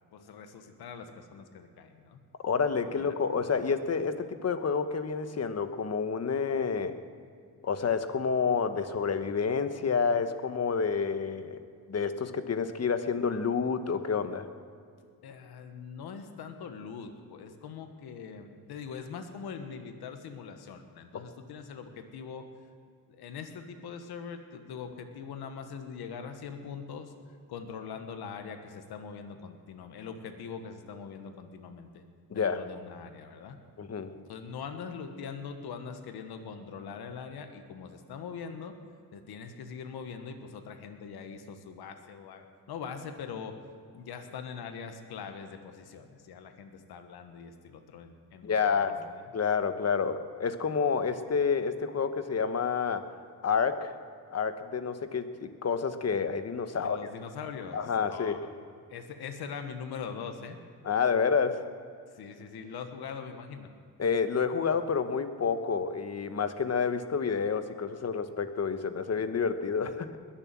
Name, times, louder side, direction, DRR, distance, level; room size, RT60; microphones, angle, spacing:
voice 1, 0.1-2.2 2.9-3.1 15.2-22.5 23.1-27.1 27.5-32.0 32.3-33.6 34.2-38.8 39.1-43.6 43.9-49.2 56.7-58.5 58.9-60.6 62.1-63.7, left 6 dB, 85° left, 6 dB, 1.4 m, -42 dB
voice 2, 2.4-6.9 7.6-11.6 11.9-14.5 21.1-21.2 32.3-32.6 33.8-34.1 48.4-49.0 49.3-53.1 53.4-53.9 54.3-57.0 57.7-58.4 60.8-61.7 64.0-70.2, left 5 dB, 40° left, 9 dB, 1.2 m, -29 dB
21.0 x 7.2 x 7.5 m, 2.2 s
cardioid pair, 80°, 37 cm